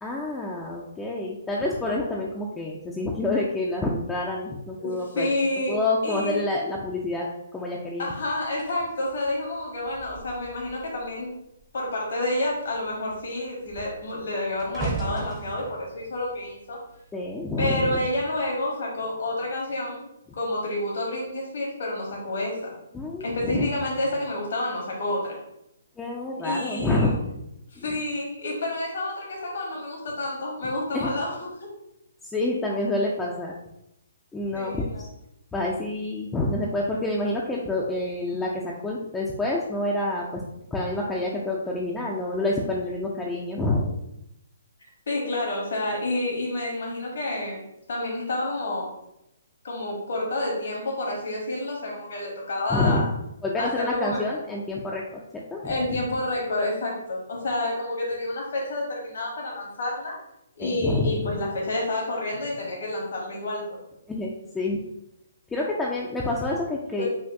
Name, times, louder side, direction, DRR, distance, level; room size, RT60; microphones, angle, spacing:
voice 1, 0.0-5.3 5.7-8.1 17.1-18.0 22.9-23.7 26.0-27.4 27.8-27.9 30.9-31.2 32.3-33.5 34.3-34.8 35.5-40.4 40.7-43.9 52.7-53.0 53.4-55.2 55.5-55.7 60.6-61.4 64.1-64.8 65.5-67.1, left 2 dB, 10° left, -3 dB, 0.5 m, -28 dB
voice 2, 4.8-5.8 6.0-6.4 8.0-11.3 11.7-16.8 17.6-22.7 23.2-25.4 26.4-27.1 27.7-31.7 34.5-35.0 45.1-47.6 47.9-48.9 49.6-53.1 53.6-54.4 55.6-60.1 60.5-63.8 67.0-67.1, left 1 dB, 60° left, -2 dB, 1.2 m, -29 dB
sound 1, 8.5-11.2 11.5-11.9 12.2-17.5 18.3-18.5, right 3 dB, 20° right, 0.8 m, -38 dB
5.5 x 2.5 x 2.6 m, 0.82 s
figure-of-eight pair, 130°, 0 cm